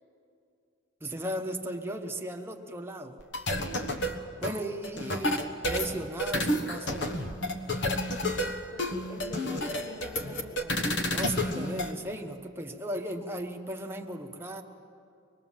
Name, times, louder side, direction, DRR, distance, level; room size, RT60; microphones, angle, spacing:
voice 1, 1.0-3.2 4.4-7.2 11.1-14.6, right 1 dB, 10° right, 3 dB, 1.1 m, -36 dB
sound 1, 3.2-11.9, left 1 dB, 65° left, 1.3 m, -30 dB
voice 2, 8.7-10.8, left 2 dB, 40° left, -5 dB, 4.9 m, -43 dB
24.5 x 20.5 x 7.4 m, 2.5 s
head